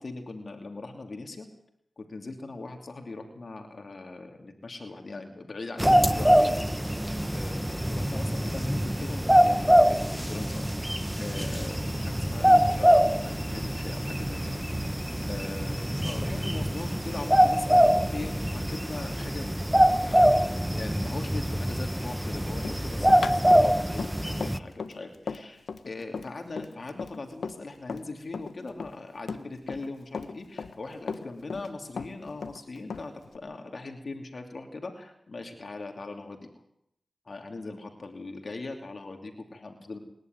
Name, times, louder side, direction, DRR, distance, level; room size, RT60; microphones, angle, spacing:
voice 1, 0.0-1.5 2.0-6.6 7.3-10.7 11.2-14.6 15.2-36.5 37.2-40.0, left 3 dB, 60° left, 4 dB, 2.8 m, -40 dB
sound 1, 5.8-24.6, equal, 10° right, 1.1 m, -24 dB
Run, 22.6-28.1 28.3-29.9 30.1-31.7 32.0-33.4, left 5 dB, 90° left, 1.3 m, -36 dB
28.0 x 11.0 x 9.4 m, 0.75 s
cardioid pair, 45°, 0 cm